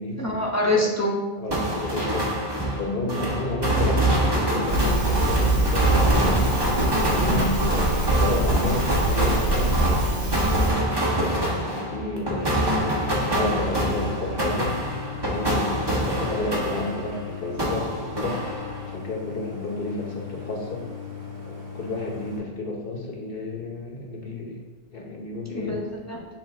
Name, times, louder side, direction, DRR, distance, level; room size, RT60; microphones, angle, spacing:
voice 1, 0.2-1.2 7.3-7.6 25.5-26.3, left 1 dB, 15° left, -3 dB, 1.1 m, -25 dB
voice 2, 1.4-2.3 2.7-6.4 6.8-9.8 10.2-13.0 13.2-14.7 15.2-18.6 18.9-20.9 21.5-24.6 24.9-25.8, left 2 dB, 55° left, 0 dB, 1.3 m, -31 dB
sound 1, 1.5-17.2 17.6-18.9, right 1 dB, 25° right, 1.1 m, -25 dB
Crackle, 4.7-10.7, right 1 dB, 40° right, 1.4 m, -25 dB
Idling, 12.8-22.4, left 6 dB, 70° right, 2.5 m, -38 dB
7.7 x 3.8 x 3.6 m, 1.2 s
omnidirectional pair, 1.1 m